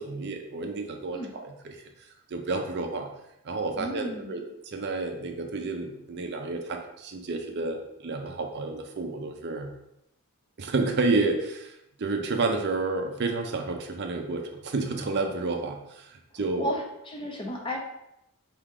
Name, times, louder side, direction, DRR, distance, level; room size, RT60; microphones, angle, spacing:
voice 1, 0.0-1.8 2.3-3.1 3.4-9.7 10.6-16.7, right 3 dB, 50° right, 3 dB, 0.5 m, -30 dB
voice 2, 3.8-4.4 16.6-17.8, equal, 20° left, 0 dB, 0.7 m, -33 dB
4.5 x 2.9 x 3.6 m, 0.83 s
head